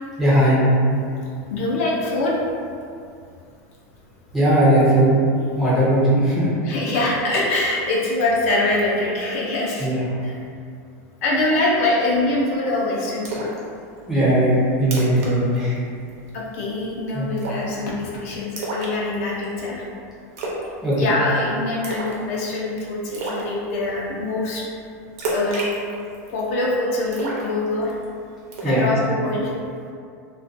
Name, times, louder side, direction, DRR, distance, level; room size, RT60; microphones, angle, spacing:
voice 1, 0.2-0.6 4.3-5.1 5.5-6.5 9.8-10.1 14.1-14.5 14.8-15.8 17.1-17.3 20.8-21.1 28.6-28.9, right 1 dB, ahead, -11 dB, 0.4 m, -18 dB
voice 2, 1.5-2.4 6.7-9.9 10.2-10.3 11.2-13.5 16.3-19.8 21.0-24.6 25.3-25.7 26.3-27.9 28.6-29.5, left 2 dB, 55° left, -4 dB, 0.5 m, -24 dB
Splash splatter, 13.2-13.6 14.0-14.1 14.5-14.6 14.8-15.3 15.6-15.8 16.1-16.5 17.4-17.7 18.6-19.4 20.4-20.7 20.9-21.3 21.8-22.2 22.5-22.6 23.1-23.4 25.2-26.4 27.1-28.0 28.5-28.8, right 1 dB, 55° right, 0.6 m, -29 dB
2.4 x 2.2 x 2.5 m, 2.3 s
supercardioid pair, 180°, 9 cm